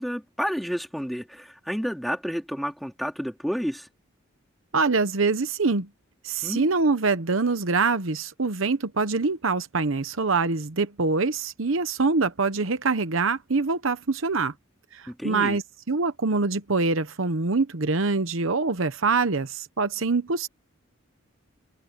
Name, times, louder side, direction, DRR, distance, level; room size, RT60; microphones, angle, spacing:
voice 1, 0.0-3.9 6.4-6.7 15.1-15.6, equal, ahead, 3.7 m, -30 dB
voice 2, 4.7-5.9 6.2-14.5 14.9-15.6 15.9-20.5, right 4 dB, 70° right, 1.0 m, -24 dB
head